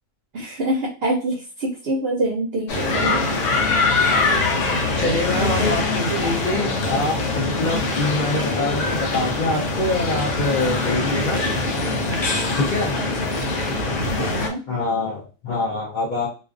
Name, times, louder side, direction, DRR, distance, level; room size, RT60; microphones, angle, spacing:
voice 1, 0.3-3.6 5.4-5.8 13.0-13.3 14.2-14.6, right 1 dB, 60° right, -2 dB, 0.7 m, -26 dB
sound 1, 2.7-14.5, left 3 dB, 75° left, 0.9 m, -23 dB
voice 2, 5.0-11.4 12.6-12.9 14.7-16.3, left 2 dB, 55° left, -2 dB, 0.5 m, -25 dB
2.4 x 2.3 x 2.4 m, 0.35 s
omnidirectional pair, 1.3 m